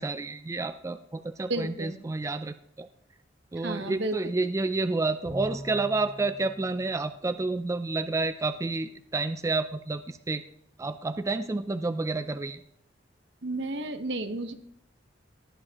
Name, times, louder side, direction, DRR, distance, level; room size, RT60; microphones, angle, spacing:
voice 1, 0.0-2.9 3.5-10.4 10.8-12.6, right 3 dB, 15° right, 11 dB, 0.3 m, -30 dB
voice 2, 1.5-2.0 3.6-4.2 13.4-14.5, right 2 dB, 70° right, 8 dB, 1.1 m, -32 dB
Bowed string instrument, 5.2-7.9, equal, 35° left, 2.6 m, -43 dB
18.0 x 9.7 x 2.9 m, 0.72 s
head